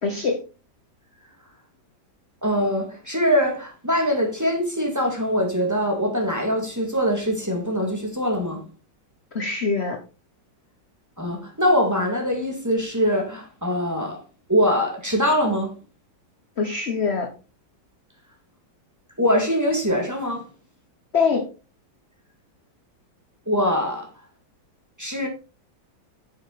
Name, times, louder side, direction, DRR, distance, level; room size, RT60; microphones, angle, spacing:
voice 1, 0.0-0.4 9.3-10.0 16.6-17.3 21.1-21.4, left 5 dB, 40° left, 1.1 m, -23 dB
voice 2, 2.4-8.6 11.2-14.2 14.5-15.7 19.2-20.5 23.5-24.1 25.0-25.3, equal, 10° right, 2.3 m, -23 dB
8.2 x 7.1 x 4.1 m
omnidirectional pair, 2.1 m